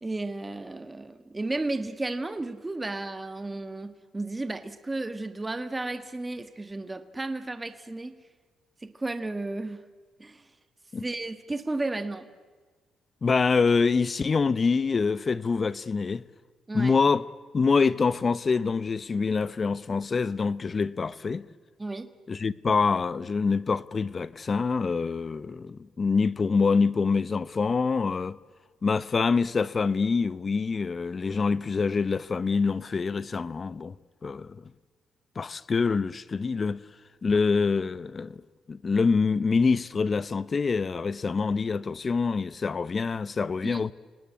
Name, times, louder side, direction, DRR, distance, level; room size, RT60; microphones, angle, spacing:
voice 1, 0.0-8.2 8.8-9.8 10.2-10.4 11.0-12.3 16.7-17.0 21.8-22.1 43.6-43.8, right 2 dB, 20° right, 1.4 m, -33 dB
voice 2, 13.2-16.2 16.7-17.2 17.5-21.5 22.3-28.4 28.8-33.9 34.2-34.6 35.4-36.8 37.2-38.4 38.7-43.9, left 4 dB, 35° left, 0.8 m, -25 dB
29.0 x 19.0 x 8.5 m
cardioid pair, 90°, 0 cm